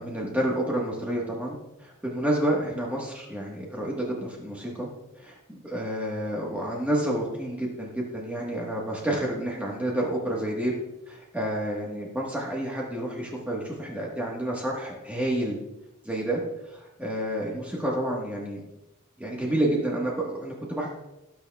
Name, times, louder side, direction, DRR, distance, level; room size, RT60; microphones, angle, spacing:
voice 1, 0.0-4.9 5.2-10.7 11.1-15.6 16.0-16.4 16.7-18.6 19.2-20.9, right 1 dB, 5° right, -4 dB, 1.3 m, -29 dB
19.0 x 6.3 x 2.3 m, 0.95 s
head